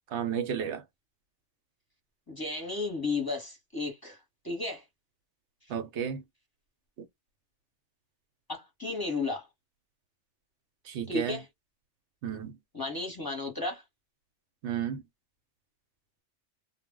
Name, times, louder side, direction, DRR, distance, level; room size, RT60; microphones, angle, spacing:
voice 1, 0.1-0.8 5.7-6.2 10.8-11.4 12.2-12.6 14.6-15.0, right 8 dB, 75° right, 0.9 m, -32 dB
voice 2, 2.3-4.8 8.5-9.5 11.1-11.4 12.7-13.8, left 3 dB, 20° left, 0.8 m, -33 dB
2.1 x 2.0 x 3.5 m
omnidirectional pair, 1.2 m